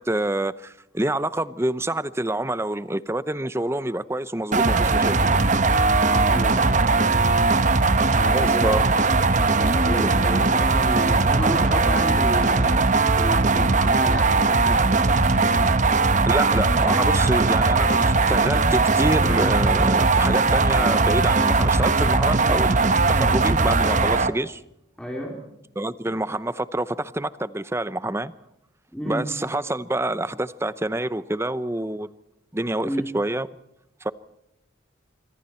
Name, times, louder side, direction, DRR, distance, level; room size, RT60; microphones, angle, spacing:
voice 1, 0.0-5.5 8.3-8.9 10.0-10.1 16.2-24.6 25.8-28.3 29.1-32.1 32.5-33.5 34.0-34.1, right 1 dB, 15° right, 15 dB, 0.7 m, -27 dB
sound 1, 4.5-24.3, right 3 dB, 40° right, 1.0 m, -19 dB
voice 2, 6.0-7.4 8.1-8.7 9.5-15.0 22.5-22.6 25.0-25.4 28.9-29.2 32.8-33.1, equal, 5° left, -1 dB, 3.0 m, -32 dB
26.0 x 24.0 x 4.4 m, 0.84 s
head